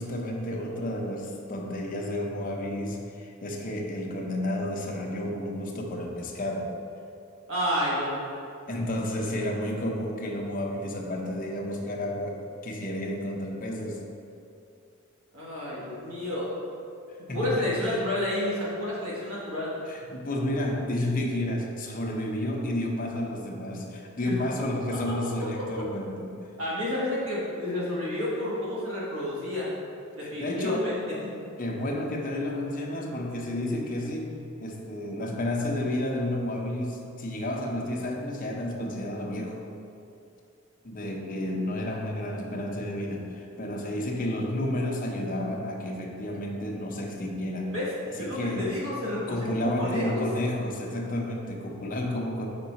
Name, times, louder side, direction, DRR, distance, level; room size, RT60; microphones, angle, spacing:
voice 1, 0.0-6.7 8.7-14.0 17.1-18.0 19.9-26.4 30.2-31.0 31.6-34.3 34.6-39.6 40.8-47.8 48.1-48.8 49.2-52.5, left 1 dB, 40° left, 0 dB, 0.7 m, -31 dB
voice 2, 7.5-8.2 15.3-16.5 17.3-19.7 24.3-24.4 25.7-25.8 26.6-29.7 30.2-31.0 47.7-47.9 48.2-50.2, left 1 dB, 70° right, -7 dB, 1.3 m, -30 dB
5.4 x 4.6 x 4.1 m, 2.6 s
head